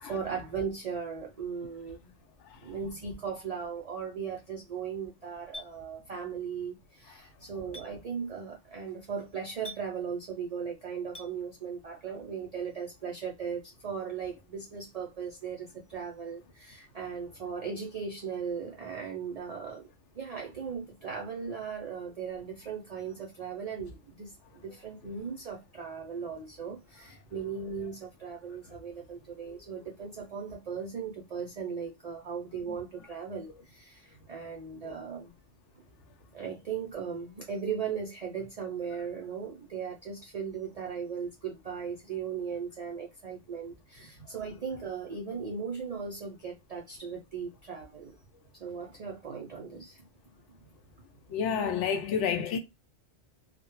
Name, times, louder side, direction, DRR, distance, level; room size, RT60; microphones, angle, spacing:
voice 1, 0.0-2.1 2.6-19.9 20.1-35.3 36.3-48.2 48.5-50.6, right 6 dB, 60° right, 0.4 m, -38 dB
Chink clink, 5.5-5.7 7.7-7.9 9.6-9.8 11.1-11.3, equal, 25° left, 0.7 m, -42 dB
voice 2, 51.3-52.6, left 7 dB, 85° left, 0.9 m, -29 dB
2.2 x 2.1 x 2.9 m
omnidirectional pair, 1.2 m